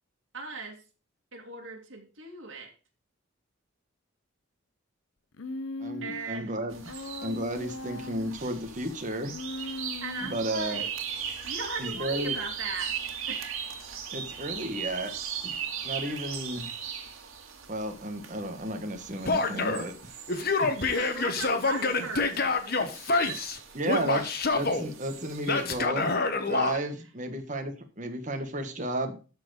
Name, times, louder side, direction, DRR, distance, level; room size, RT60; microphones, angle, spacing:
voice 1, 0.3-0.8 1.3-2.7 6.0-6.5 10.0-10.9 11.4-13.0 13.3-13.5 20.5-23.4, right 4 dB, 65° right, 0 dB, 2.7 m, -39 dB
Human voice, 5.4-6.3 6.9-8.4 9.3-10.6, left 2 dB, 70° left, 0.7 m, -39 dB
voice 2, 5.8-6.8 7.2-9.3 10.2-10.8 11.8-12.3 14.1-15.1 15.4-15.5 15.8-16.7 17.7-20.1 23.7-26.1 26.4-29.2, right 1 dB, 35° right, 5 dB, 1.5 m, -33 dB
sound 1, 6.7-25.9, right 7 dB, 90° right, 2.0 m, -39 dB
Male speech man speaking / Yell, 19.3-19.9 20.3-23.6 23.9-24.8 25.5-26.8, left 3 dB, 45° left, 1.2 m, -27 dB
12.5 x 4.6 x 4.9 m, 0.34 s
head